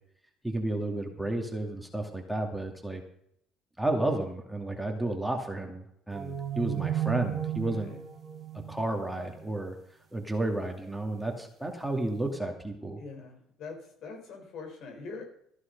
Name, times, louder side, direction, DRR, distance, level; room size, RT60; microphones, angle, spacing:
voice 1, 0.4-3.0 3.8-7.9 8.7-9.8 10.1-13.0, right 2 dB, 5° right, 2 dB, 2.4 m, -32 dB
sound 1, 6.1-9.5, right 11 dB, 35° right, 2.6 m, -34 dB
voice 2, 7.6-8.0 13.0-15.4, left 4 dB, 65° left, 5 dB, 4.3 m, -43 dB
14.5 x 11.0 x 5.4 m, 0.71 s
supercardioid pair, 90°, 0 cm